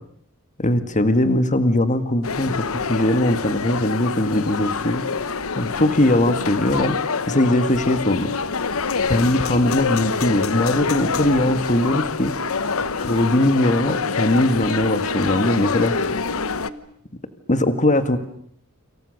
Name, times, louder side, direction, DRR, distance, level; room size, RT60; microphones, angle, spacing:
voice 1, 0.6-5.0 5.5-7.0 7.3-8.3 9.1-12.3 13.0-16.2 17.5-18.2, left 1 dB, 35° left, 10 dB, 1.9 m, -20 dB
sound 1, 2.2-16.7, left 5 dB, 70° left, 1.1 m, -26 dB
sound 2, 3.5-16.7, left 1 dB, 85° right, 4.8 m, -43 dB
28.5 x 27.5 x 6.6 m, 0.66 s
head